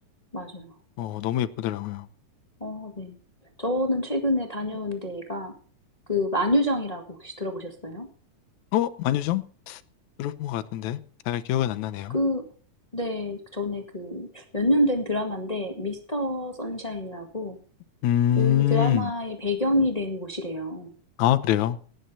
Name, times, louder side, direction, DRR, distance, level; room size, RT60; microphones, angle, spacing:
voice 1, 0.3-0.7 2.6-3.2 3.6-5.5 6.1-8.1 12.1-12.4 12.9-17.6 18.4-20.9, left 1 dB, 20° left, 1.0 m, -27 dB
voice 2, 1.0-2.1 8.7-9.8 10.2-11.0 11.3-12.2 18.0-19.1 21.2-21.8, left 12 dB, 70° left, 2.1 m, -25 dB
18.0 x 9.4 x 4.2 m
omnidirectional pair, 3.7 m